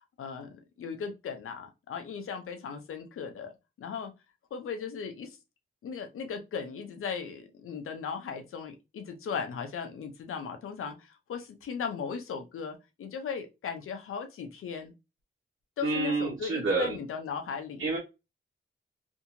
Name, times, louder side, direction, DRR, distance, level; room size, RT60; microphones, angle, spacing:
voice 1, 0.2-3.5 3.8-4.1 4.5-5.3 5.8-14.9 15.8-17.9, left 6 dB, 85° left, 6 dB, 0.6 m, -37 dB
voice 2, 15.8-17.0 17.8-18.0, right 3 dB, 65° right, -4 dB, 1.0 m, -28 dB
2.7 x 2.6 x 2.6 m, 0.25 s
cardioid pair, 55°, 21 cm